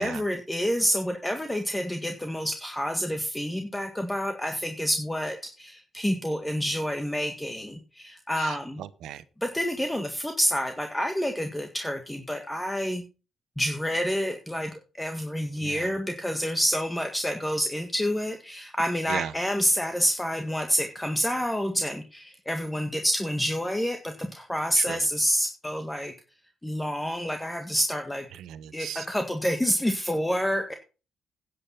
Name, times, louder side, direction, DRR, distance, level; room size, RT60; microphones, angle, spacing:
voice 1, 0.0-8.8 9.4-13.0 13.6-26.1 26.6-28.3 28.7-30.7, equal, 5° left, 1.7 m, -28 dB
voice 2, 8.4-9.2 15.6-15.9 19.1-19.3 24.8-25.1 28.3-29.1, right 11 dB, 80° right, 1.0 m, -37 dB
10.5 x 8.8 x 5.7 m
cardioid pair, 90°, 0 cm